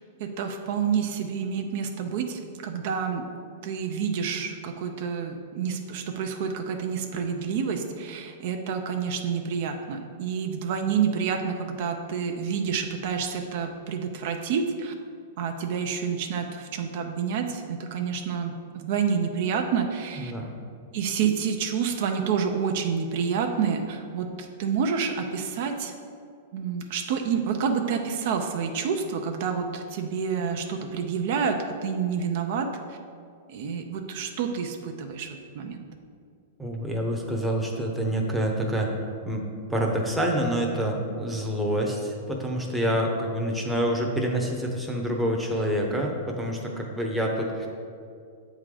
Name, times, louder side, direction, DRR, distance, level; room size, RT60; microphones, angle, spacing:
voice 1, 0.2-3.3 3.6-14.9 15.4-20.3 20.9-25.9 26.5-33.0 33.5-35.3 35.5-35.9, right 6 dB, 55° right, 4 dB, 0.6 m, -28 dB
voice 2, 20.2-20.5 36.6-38.9 39.2-47.7, equal, 5° right, -1 dB, 0.8 m, -27 dB
7.5 x 3.7 x 4.9 m, 2.3 s
hypercardioid pair, 145°, 0 cm